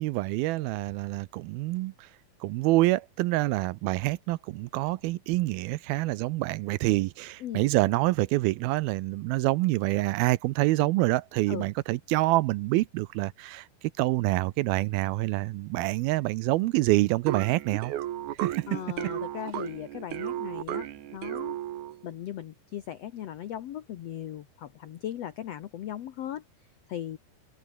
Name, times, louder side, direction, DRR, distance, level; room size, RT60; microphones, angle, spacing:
voice 1, 0.0-2.1 2.4-13.7 14.0-17.9 18.4-18.8, right 19 dB, 80° right, 2.5 m, -26 dB
sound 1, 17.3-22.1, right 13 dB, 65° right, 2.2 m, -34 dB
voice 2, 18.7-20.9 21.1-21.5 22.0-26.4 26.9-27.2, left 11 dB, 80° left, 1.4 m, -38 dB
omnidirectional pair, 4.4 m